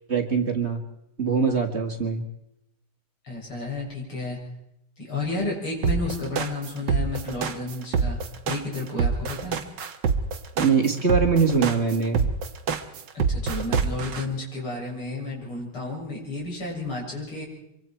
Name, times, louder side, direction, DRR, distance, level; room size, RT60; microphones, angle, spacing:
voice 1, 0.1-0.8 1.2-2.2 10.6-12.3, right 5 dB, 30° right, 3 dB, 2.2 m, -23 dB
voice 2, 3.2-4.4 5.0-9.6 13.1-17.4, left 2 dB, 90° left, -3 dB, 8.2 m, -32 dB
sound 1, 5.8-14.2, right 5 dB, 60° right, 1.8 m, -25 dB
25.5 x 24.0 x 4.6 m, 0.80 s
omnidirectional pair, 2.3 m